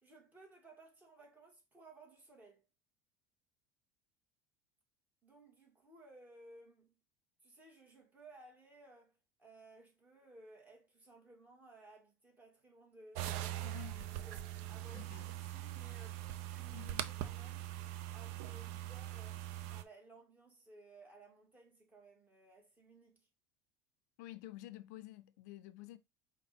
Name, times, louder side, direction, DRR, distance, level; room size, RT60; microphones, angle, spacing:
voice 1, 0.0-2.7 5.2-7.0 7.4-17.7 18.1-19.4 19.7-23.3, right 2 dB, 20° right, 2.1 m, -59 dB
sound 1, 13.1-19.8, right 13 dB, 75° right, 0.5 m, -42 dB
voice 2, 13.6-14.0 14.9-15.3 16.7-17.2 24.2-26.0, left 15 dB, 85° left, 0.4 m, -51 dB
4.9 x 2.7 x 3.5 m
supercardioid pair, 115°, 9 cm